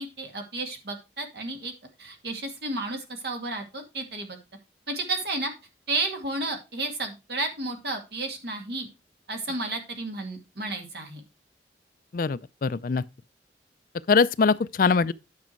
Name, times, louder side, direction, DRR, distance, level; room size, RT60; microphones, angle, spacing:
voice 1, 0.0-1.7 2.0-4.4 4.9-5.5 5.9-8.9 9.3-11.2, right 2 dB, 65° right, 2.2 m, -32 dB
voice 2, 12.1-13.0 14.1-15.1, left 5 dB, 50° left, 0.4 m, -22 dB
9.6 x 6.2 x 4.5 m
head